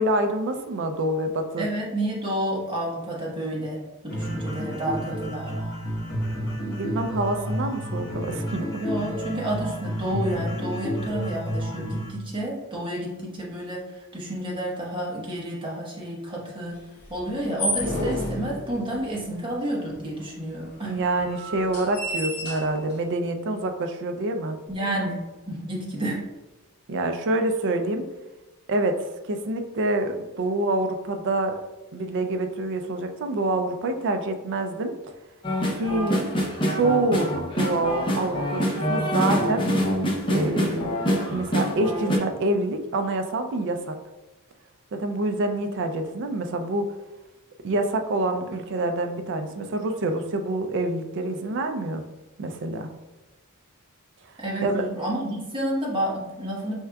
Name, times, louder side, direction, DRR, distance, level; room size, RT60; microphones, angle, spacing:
voice 1, 0.0-1.7 6.8-8.8 20.8-24.6 26.9-28.1 28.7-31.6 31.9-34.9 35.7-36.3 36.7-39.7 40.3-41.0 41.3-44.0 44.9-46.9 47.6-52.0 52.4-52.9 54.6-54.8, right 2 dB, 55° right, 6 dB, 0.4 m, -26 dB
voice 2, 1.6-5.5 8.8-16.8 17.1-20.9 24.7-26.2 54.4-56.8, right 1 dB, 25° right, -4 dB, 1.0 m, -30 dB
sound 1, 4.1-12.1, equal, 45° left, 1.5 m, -30 dB
sound 2, 17.0-19.1 19.9-20.0 20.2-20.3 21.0-23.0, equal, 80° left, 1.2 m, -31 dB
sound 3, 35.4-42.2, equal, 20° left, 0.7 m, -25 dB
4.5 x 3.5 x 2.3 m, 1.1 s
head